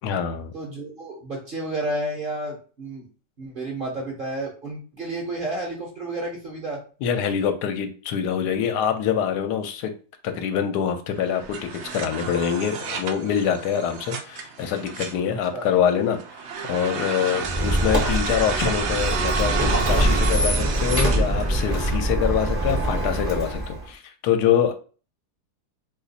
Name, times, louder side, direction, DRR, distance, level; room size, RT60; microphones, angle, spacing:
voice 1, 0.0-0.5 7.0-9.9 10.2-16.2 16.7-24.7, left 8 dB, 80° left, 7 dB, 1.1 m, -25 dB
voice 2, 0.5-3.0 3.4-6.8 15.5-15.7, right 1 dB, 45° right, -2 dB, 0.8 m, -31 dB
sound 1, 11.2-22.0, right 5 dB, 75° right, 0.6 m, -31 dB
Squeak, 17.4-23.8, right 1 dB, 15° right, 0.5 m, -23 dB
2.7 x 2.4 x 3.9 m, 0.38 s
omnidirectional pair, 1.7 m